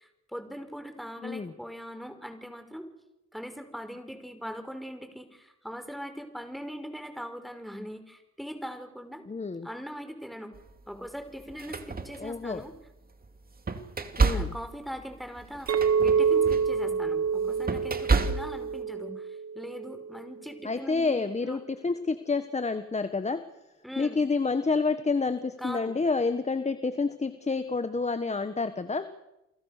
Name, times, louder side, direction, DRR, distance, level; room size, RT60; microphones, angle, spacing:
voice 1, 0.0-2.9 3.3-9.2 9.6-10.5 10.9-12.7 14.3-21.6 23.8-24.2 25.6-25.9, equal, ahead, 7 dB, 5.3 m, -41 dB
voice 2, 1.2-1.5 9.3-9.7 12.2-12.6 14.2-14.5 20.6-23.5 24.0-29.1, left 4 dB, 20° left, 10 dB, 1.4 m, -29 dB
sound 1, 10.5-10.7 11.4-12.8 13.2-18.8, right 4 dB, 30° right, 2.6 m, -30 dB
Chink clink, 15.7-20.2, right 6 dB, 55° right, 1.4 m, -27 dB
29.5 x 23.0 x 6.8 m, 0.90 s
cardioid pair, 90°, 30 cm